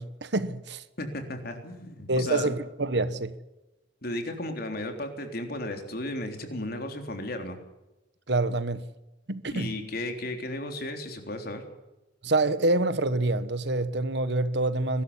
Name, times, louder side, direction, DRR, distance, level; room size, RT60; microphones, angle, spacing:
voice 1, 0.0-0.8 2.1-3.4 8.3-8.9 9.3-9.7 12.2-15.0, right 2 dB, 65° right, 1.3 m, -26 dB
voice 2, 1.0-2.6 4.0-7.6 9.5-11.6, left 1 dB, 55° left, 3.7 m, -34 dB
22.5 x 13.5 x 10.0 m
head